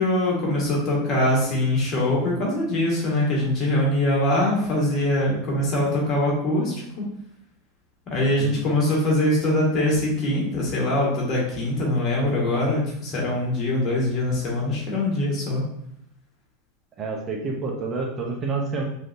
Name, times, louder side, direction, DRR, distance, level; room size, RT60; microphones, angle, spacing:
voice 1, 0.0-7.0 8.1-15.6, left 1 dB, 45° left, -3 dB, 1.3 m, -23 dB
voice 2, 17.0-18.8, right 4 dB, 35° right, 0 dB, 0.6 m, -28 dB
3.3 x 2.6 x 2.5 m, 0.76 s
supercardioid pair, 120°, 0 cm